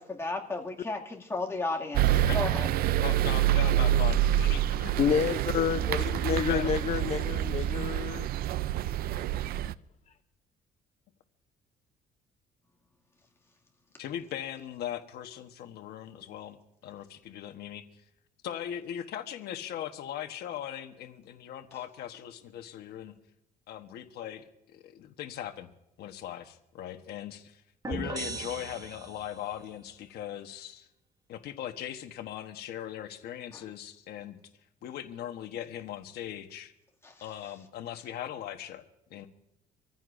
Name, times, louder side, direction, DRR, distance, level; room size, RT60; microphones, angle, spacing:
voice 1, 0.0-2.7 33.5-33.6 37.0-37.1, left 2 dB, 15° left, -1 dB, 2.3 m, -34 dB
sound 1, 1.9-9.7, right 12 dB, 60° right, 0.5 m, -27 dB
voice 2, 2.2-2.7 3.0-4.9 5.2-6.7 14.0-16.6 16.8-17.8 18.4-23.1 23.7-24.5 24.7-25.7 26.0-27.6 27.9-30.9 31.3-34.4 34.8-36.7 37.2-38.8 39.1-39.3, left 10 dB, 70° left, 7 dB, 1.1 m, -39 dB
voice 3, 5.0-8.3, left 8 dB, 40° left, 10 dB, 0.6 m, -29 dB
sound 2, 27.8-29.5, right 3 dB, 20° right, 1.1 m, -38 dB
26.5 x 14.5 x 2.6 m, 0.85 s
cardioid pair, 110°, 17 cm